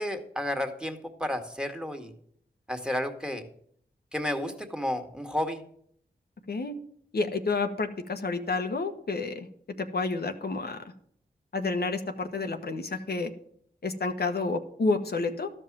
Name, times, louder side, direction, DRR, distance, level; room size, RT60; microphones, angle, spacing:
voice 1, 0.0-2.1 2.7-3.4 4.1-5.6, left 1 dB, 5° right, 6 dB, 1.9 m, -32 dB
voice 2, 7.1-9.5 9.8-10.8 11.5-13.3 13.8-15.5, left 3 dB, 60° left, 6 dB, 1.3 m, -29 dB
12.5 x 5.5 x 7.4 m, 0.65 s
cardioid pair, 45°, 19 cm